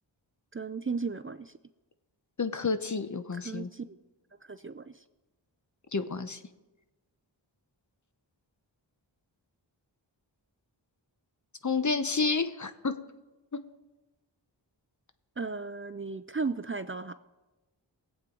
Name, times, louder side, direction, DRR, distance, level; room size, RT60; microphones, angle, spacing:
voice 1, 0.5-1.5 3.3-4.0 4.5-5.0 15.4-17.1, right 4 dB, 30° right, 12 dB, 0.5 m, -35 dB
voice 2, 2.4-3.7 5.9-6.4 11.6-13.0 13.5-13.6, left 4 dB, 40° left, 10 dB, 0.9 m, -30 dB
19.5 x 8.4 x 3.9 m, 1.1 s
cardioid pair, 40°, 45 cm